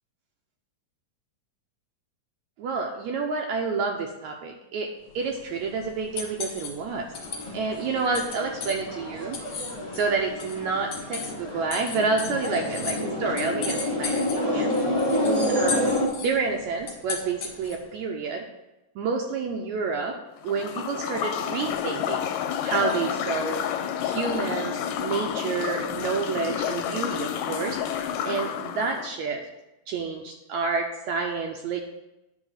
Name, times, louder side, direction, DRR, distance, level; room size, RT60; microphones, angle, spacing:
voice 1, 2.6-4.9 5.1-7.1 7.5-9.4 9.9-14.7 15.5-15.8 16.2-18.4 19.0-20.2 20.4-22.2 22.6-23.6 24.0-27.8 28.2-29.4 29.9-31.8, right 4 dB, 75° right, 2 dB, 1.8 m, -29 dB
sound 1, 5.1-17.9, left 5 dB, 55° left, 2.0 m, -38 dB
sound 2, 7.1-16.1, left 1 dB, 35° left, 0.5 m, -29 dB
sound 3, 20.4-29.1, left 9 dB, 85° left, 2.1 m, -30 dB
10.5 x 3.6 x 6.3 m, 0.95 s
omnidirectional pair, 3.8 m